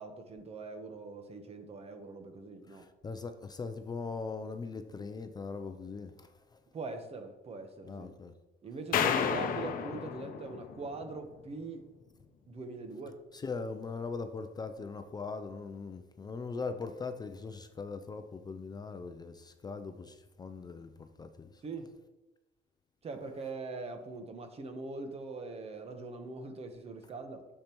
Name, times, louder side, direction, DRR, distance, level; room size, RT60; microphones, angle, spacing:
voice 1, 0.0-2.8 6.7-8.1 8.6-11.8 12.5-13.2 21.6-21.9 23.0-27.5, right 3 dB, 35° right, 1.1 m, -42 dB
voice 2, 2.7-6.6 7.9-8.3 8.9-9.3 13.3-21.5, left 4 dB, 25° left, 0.5 m, -40 dB
sound 1, 8.9-11.3, left 7 dB, 55° left, 0.7 m, -32 dB
8.6 x 6.6 x 3.0 m
cardioid pair, 110°, 17 cm